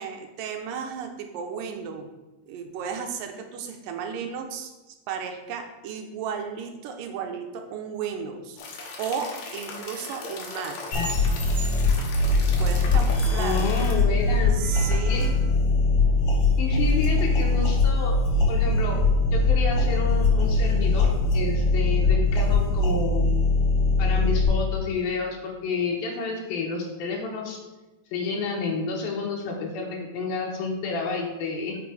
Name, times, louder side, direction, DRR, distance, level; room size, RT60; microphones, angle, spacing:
voice 1, 0.0-2.1 2.5-8.6 9.0-11.0 12.6-13.7 14.5-15.3, right 7 dB, 75° right, 4 dB, 2.2 m, -34 dB
sound 1, 8.6-13.9, left 3 dB, 70° left, 1.8 m, -38 dB
sound 2, 10.9-24.4, left 3 dB, 50° left, 2.0 m, -22 dB
voice 2, 13.3-14.6 15.1-15.2 16.6-18.2 18.5-19.0 19.3-23.3 24.0-27.6 28.1-31.8, left 4 dB, 85° left, -1 dB, 2.7 m, -30 dB
5.8 x 5.1 x 4.7 m, 1.1 s
omnidirectional pair, 4.2 m